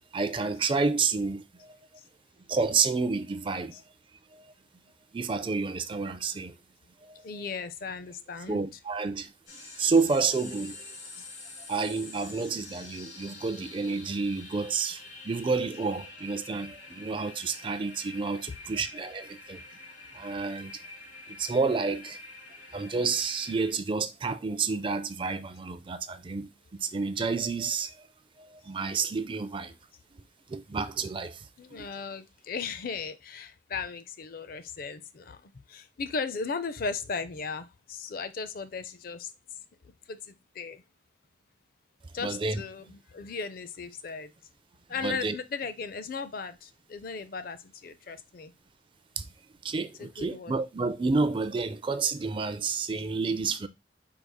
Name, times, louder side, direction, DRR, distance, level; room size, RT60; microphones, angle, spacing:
voice 1, 0.1-1.8 2.5-3.8 4.3-4.5 5.1-6.6 7.0-7.4 8.5-9.3 9.8-11.0 11.6-19.6 20.1-20.7 21.4-22.2 22.7-26.5 26.8-28.1 28.4-29.7 30.5-31.5 31.7-31.9 42.2-42.6 45.0-45.4 49.2-49.3 49.6-53.7, right 4 dB, 25° right, 0.4 m, -30 dB
voice 2, 7.2-8.6 11.2-11.3 18.5-18.6 31.6-39.3 40.1-40.8 42.1-44.3 44.9-48.5 50.0-50.6, left 5 dB, 50° left, 0.5 m, -37 dB
sound 1, 9.5-23.7, left 3 dB, 85° left, 1.9 m, -47 dB
5.0 x 4.7 x 2.2 m
head